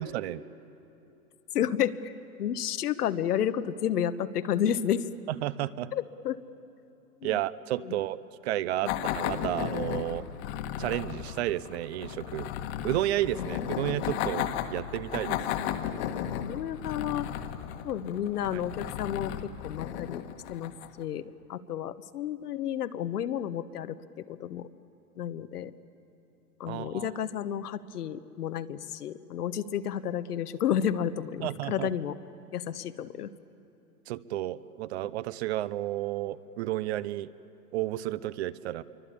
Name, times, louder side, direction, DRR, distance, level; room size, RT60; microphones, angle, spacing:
voice 1, 1.5-2.1 2.4-5.1 5.9-6.4 7.2-7.4 7.8-8.0 8.8-8.9 13.3-13.5 15.2-15.4 16.4-17.3 17.8-20.2 20.5-20.7 21.0-24.7 25.2-25.8 26.6-32.2 32.5-33.3, left 9 dB, 75° left, 12 dB, 1.3 m, -31 dB
voice 2, 5.4-5.9 7.2-10.2 10.8-12.5 12.8-15.4 26.7-27.1 31.4-31.9 34.1-37.3 37.7-38.8, right 14 dB, 45° right, 17 dB, 0.7 m, -32 dB
sound 1, 8.9-21.0, left 10 dB, 45° left, 1.6 m, -34 dB
28.0 x 24.0 x 8.5 m, 3.0 s
hypercardioid pair, 140°, 46 cm